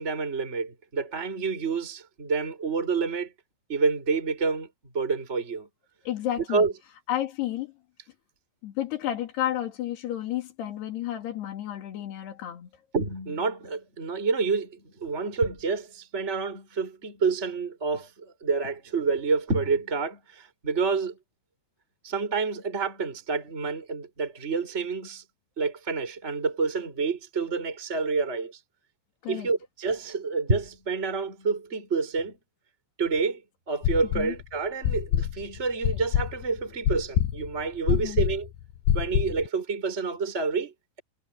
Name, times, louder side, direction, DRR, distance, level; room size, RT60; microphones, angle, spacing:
voice 1, 0.0-3.3 3.7-4.7 4.9-5.7 6.5-6.7 12.9-21.2 22.0-25.2 25.6-28.6 29.3-32.4 33.0-33.4 33.7-38.5 38.9-41.0, right 4 dB, 15° right, 4.6 m, -28 dB
voice 2, 6.1-6.7 7.1-7.7 8.6-12.7 29.2-29.5 34.2-34.3 37.9-38.2, left 12 dB, 60° left, 4.4 m, -31 dB
sound 1, 33.8-34.4 34.8-39.5, left 11 dB, 90° left, 2.0 m, -26 dB
omnidirectional pair, 5.6 m